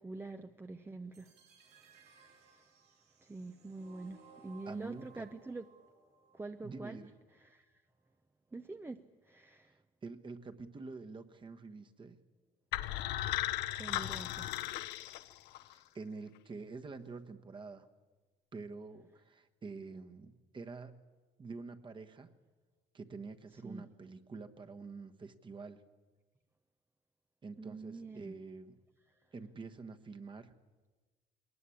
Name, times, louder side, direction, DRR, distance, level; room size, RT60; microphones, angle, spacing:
voice 1, 0.0-1.3 3.2-5.6 6.3-7.0 7.5-7.6 8.5-9.7 13.7-14.5 23.6-23.8 27.6-28.3, right 3 dB, 15° right, 8 dB, 0.6 m, -45 dB
sound 1, 1.1-7.1, right 5 dB, 80° right, 5.7 m, -62 dB
voice 2, 4.7-5.3 6.6-7.1 10.0-12.2 15.7-17.9 18.5-21.0 21.4-22.3 22.9-25.8 27.4-28.8 29.3-30.5, right 4 dB, 30° right, 7 dB, 1.3 m, -47 dB
sound 2, 12.7-15.7, left 14 dB, 85° left, 0.7 m, -36 dB
21.0 x 19.5 x 8.5 m, 1.3 s
cardioid pair, 110°, 17 cm